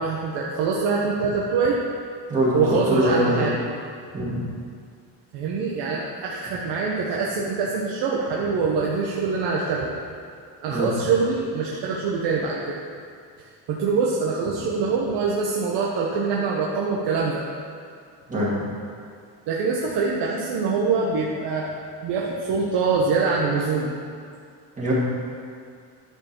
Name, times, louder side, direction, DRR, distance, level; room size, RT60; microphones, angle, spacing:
voice 1, 0.0-1.8 2.5-3.5 5.3-9.9 10.6-12.8 13.7-17.4 19.5-21.7 22.0-23.9, right 4 dB, 80° right, -3 dB, 1.2 m, -24 dB
voice 2, 2.3-3.4 4.1-4.3 10.7-10.9 18.3-18.5 24.8-24.9, right 1 dB, 20° right, -8 dB, 2.1 m, -22 dB
11.0 x 4.8 x 6.1 m, 2.3 s
cardioid pair, 170°, 42 cm